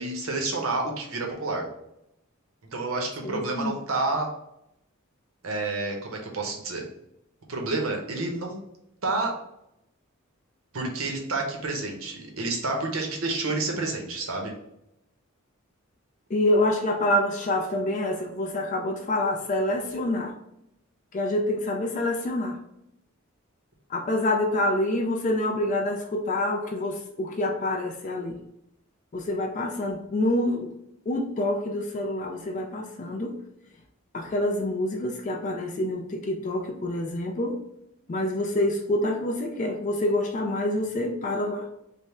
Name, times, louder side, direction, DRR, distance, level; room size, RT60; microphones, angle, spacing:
voice 1, 0.0-1.7 2.7-4.3 5.4-6.8 7.5-8.6 9.0-9.4 10.7-14.5, right 3 dB, 75° right, 1 dB, 0.8 m, -29 dB
voice 2, 3.2-3.7 16.3-20.3 21.1-22.6 23.9-28.4 29.1-30.7 31.1-33.3 34.1-37.6 38.1-41.7, left 1 dB, 35° left, 3 dB, 0.4 m, -27 dB
3.4 x 2.1 x 4.2 m, 0.82 s
head